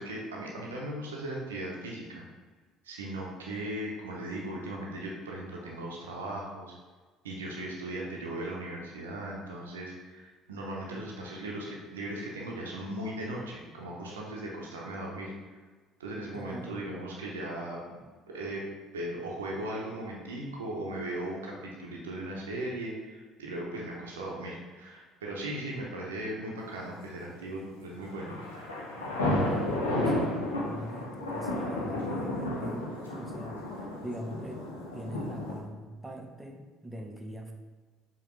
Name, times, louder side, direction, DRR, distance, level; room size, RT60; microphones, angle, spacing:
voice 1, 0.0-2.3 2.8-6.7 7.2-15.5 16.0-18.0 18.3-18.7 18.9-28.4, right 1 dB, 80° right, -3 dB, 0.6 m, -38 dB
voice 2, 16.3-16.8 29.2-33.7 34.0-34.7 34.9-37.5, right 1 dB, 10° right, 3 dB, 0.6 m, -41 dB
sound 1, 28.0-35.6, left 1 dB, 85° left, 0.7 m, -32 dB
4.8 x 2.9 x 3.0 m, 1.4 s
hypercardioid pair, 55°, 0 cm